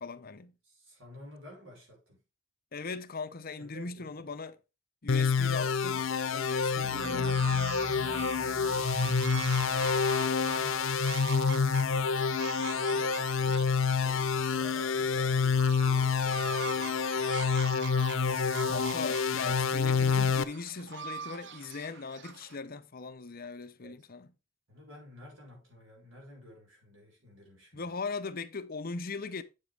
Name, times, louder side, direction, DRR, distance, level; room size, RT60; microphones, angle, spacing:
voice 1, 0.0-0.6 2.7-4.6 5.0-7.4 18.6-24.3 27.7-29.4, left 4 dB, 50° left, 0.8 m, -39 dB
voice 2, 0.6-2.2 3.6-4.1 9.6-11.9 12.5-13.7 14.0-17.5 23.8-24.0 24.7-28.0, equal, 85° right, 5.3 m, -51 dB
sound 1, 5.1-20.4, left 5 dB, 90° left, 0.7 m, -28 dB
sound 2, 6.8-11.4, equal, 25° left, 1.1 m, -46 dB
sound 3, 7.0-22.6, right 6 dB, 65° right, 0.7 m, -42 dB
8.1 x 7.7 x 3.4 m
head